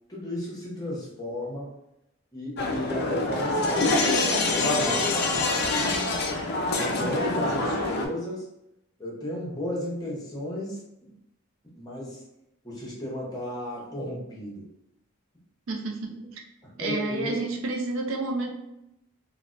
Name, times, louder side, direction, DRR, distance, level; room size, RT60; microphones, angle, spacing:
voice 1, 0.1-1.7 2.3-6.0 6.7-8.5 9.0-11.1 11.7-12.2 12.6-14.7 16.6-17.3, left 1 dB, 15° left, -4 dB, 0.7 m, -34 dB
sound 1, 2.6-8.1, left 2 dB, 45° left, 0.4 m, -25 dB
voice 2, 15.7-16.4 16.8-18.5, right 2 dB, 60° right, 1 dB, 0.4 m, -30 dB
3.2 x 2.1 x 2.5 m, 0.85 s
head